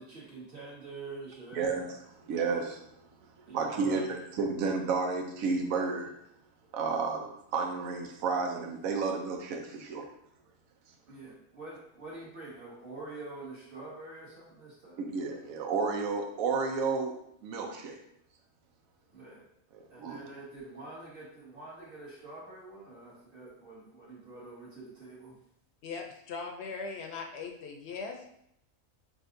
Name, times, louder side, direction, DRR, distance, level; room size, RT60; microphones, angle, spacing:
voice 1, 0.0-1.7 3.4-4.2 11.1-15.1 19.1-19.4 19.9-25.4, right 3 dB, 45° right, -6 dB, 1.6 m, -46 dB
voice 2, 1.5-1.8 2.2-3.0 3.5-4.0 4.4-6.1 6.7-10.1 15.0-17.1 17.4-18.0 20.0-20.2, right 4 dB, 85° right, 2 dB, 1.1 m, -31 dB
voice 3, 25.8-28.4, left 4 dB, 65° left, 2 dB, 0.8 m, -40 dB
6.3 x 2.4 x 2.5 m, 0.75 s
omnidirectional pair, 1.4 m